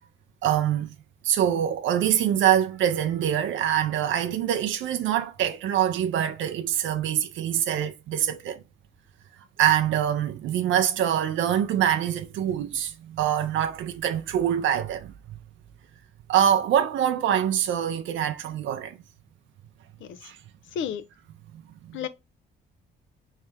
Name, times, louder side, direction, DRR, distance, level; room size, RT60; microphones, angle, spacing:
voice 1, 0.4-0.9 1.2-8.6 9.6-15.1 16.3-19.0 20.2-20.4, right 10 dB, 75° right, 0.5 m, -24 dB
voice 2, 20.7-21.0 21.9-22.1, left 8 dB, 75° left, 0.6 m, -31 dB
3.3 x 3.2 x 3.3 m
cardioid pair, 90°, 20 cm